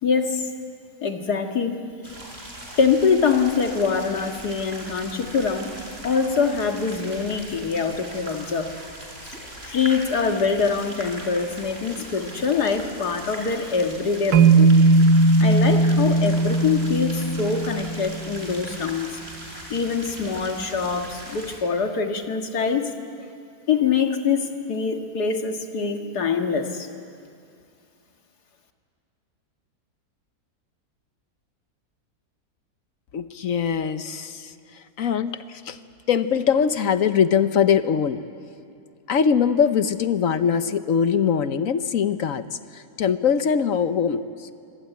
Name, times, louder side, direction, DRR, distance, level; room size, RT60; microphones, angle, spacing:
voice 1, 0.0-0.5 1.0-1.8 2.8-5.7 6.0-8.8 9.2-9.4 9.6-14.8 15.1-19.2 19.7-23.3 23.7-26.9, left 5 dB, 80° left, 4 dB, 2.3 m, -24 dB
sound 1, 2.0-21.6, right 1 dB, 40° right, 5.2 m, -40 dB
sound 2, 14.3-18.6, right 3 dB, 70° right, 1.6 m, -18 dB
voice 2, 33.1-35.8 36.1-38.4 39.1-42.5 42.7-44.6, left 7 dB, 60° left, 11 dB, 1.2 m, -22 dB
25.0 x 25.0 x 9.3 m, 2.4 s
omnidirectional pair, 1.7 m